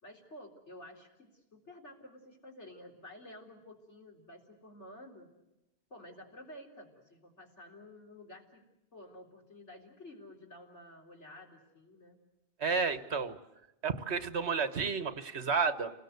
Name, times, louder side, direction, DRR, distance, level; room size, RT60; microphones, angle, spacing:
voice 1, 0.0-5.3 5.9-8.6 8.9-12.2, left 1 dB, 80° left, 1 dB, 4.1 m, -52 dB
voice 2, 12.6-13.4 13.8-15.9, right 5 dB, 70° right, 11 dB, 1.5 m, -31 dB
29.5 x 20.5 x 8.1 m, 0.94 s
omnidirectional pair, 1.2 m